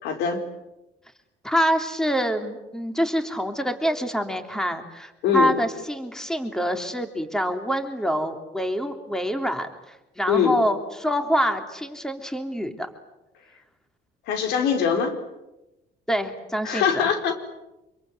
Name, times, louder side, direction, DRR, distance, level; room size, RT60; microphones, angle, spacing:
voice 1, 0.0-0.4 5.2-5.5 10.3-10.6 14.2-15.2 16.6-17.3, left 7 dB, 90° left, 6 dB, 4.8 m, -22 dB
voice 2, 1.4-12.9 16.1-17.1, equal, 5° left, 6 dB, 3.3 m, -26 dB
26.5 x 23.5 x 9.4 m, 0.96 s
cardioid pair, 110°, 17 cm